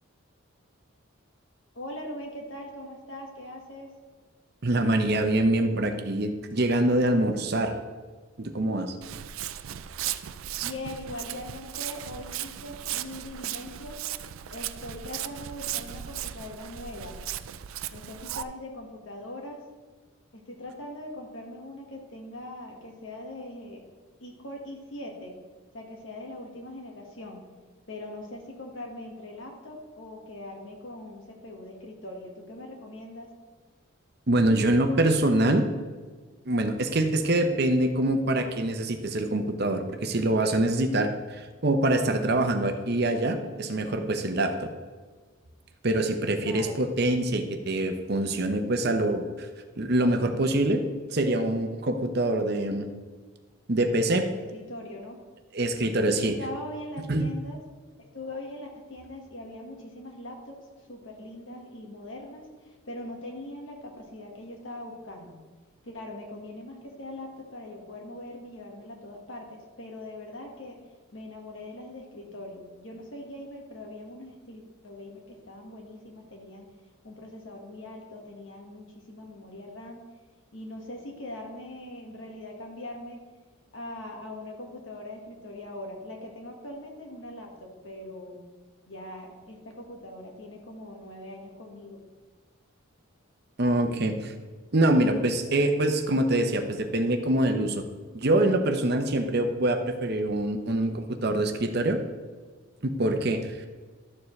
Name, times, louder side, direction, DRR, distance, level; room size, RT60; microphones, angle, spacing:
voice 1, 1.7-3.9 10.6-14.0 14.5-17.2 17.9-19.7 20.3-23.9 24.2-25.4 25.7-27.5 27.9-33.3 46.4-46.8 54.2-55.2 56.0-57.6 58.0-65.4 65.8-76.7 77.0-80.0 80.5-83.2 83.7-88.4 88.9-92.0, left 1 dB, 65° left, 1 dB, 1.7 m, -41 dB
voice 2, 4.6-7.7 8.4-9.0 34.3-35.6 36.5-44.7 45.8-49.5 49.8-50.8 51.1-52.9 53.7-54.3 55.5-56.4 57.1-57.3 93.6-94.3 94.7-97.8 98.1-102.0 102.8-103.5, right 1 dB, 50° right, 6 dB, 0.8 m, -25 dB
Walk footsteps, 9.0-18.4, right 11 dB, 75° right, 0.4 m, -36 dB
12.0 x 7.1 x 3.2 m, 1.4 s
head